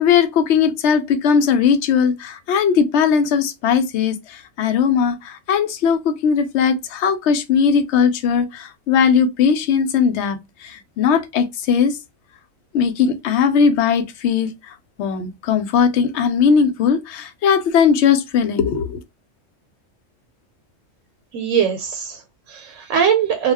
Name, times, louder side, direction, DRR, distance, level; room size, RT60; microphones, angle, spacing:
voice 1, 0.0-4.2 4.6-10.4 10.6-11.9 12.7-14.5 15.0-19.0, left 6 dB, 70° left, 0.8 m, -18 dB
voice 2, 21.3-23.5, right 7 dB, 80° right, 1.0 m, -21 dB
2.3 x 2.1 x 3.4 m
omnidirectional pair, 1.3 m